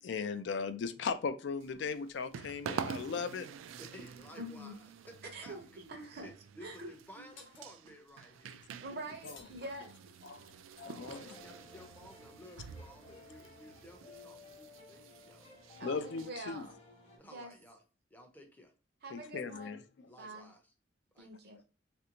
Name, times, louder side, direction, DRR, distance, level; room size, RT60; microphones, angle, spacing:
voice 1, 0.0-3.5 8.5-8.6 9.2-9.4 10.2-11.3 15.8-16.7 19.1-19.8, left 5 dB, 60° left, 0.3 m, -38 dB
sound 1, 1.6-16.7, right 7 dB, 85° right, 0.3 m, -48 dB
voice 2, 3.8-5.8 6.2-8.7 10.5-15.5 17.2-17.8 18.1-18.7 20.0-20.7 21.1-21.3, left 1 dB, 10° left, 0.5 m, -55 dB
voice 3, 4.4-4.8 5.2-6.3 6.6-7.2 8.8-9.9 15.8-16.7 17.3-17.5 19.0-19.8 20.2-20.5 21.2-21.6, right 1 dB, 55° right, 0.7 m, -45 dB
sound 2, 7.4-7.7 9.2-10.3, left 5 dB, 75° left, 0.8 m, -57 dB
sound 3, 11.1-17.2, left 3 dB, 30° left, 0.9 m, -56 dB
3.2 x 2.5 x 2.8 m
head